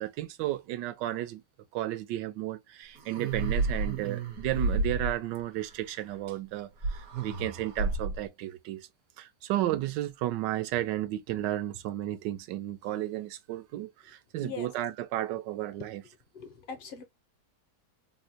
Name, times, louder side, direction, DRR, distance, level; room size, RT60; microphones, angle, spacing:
voice 1, 0.0-1.4 1.7-8.9 9.2-16.0, right 14 dB, 85° right, 1.2 m, -33 dB
sound 1, 3.0-5.4 6.8-8.3, right 3 dB, 60° right, 1.2 m, -31 dB
voice 2, 16.3-17.0, left 5 dB, 70° left, 0.5 m, -41 dB
3.9 x 2.1 x 2.7 m
omnidirectional pair, 1.9 m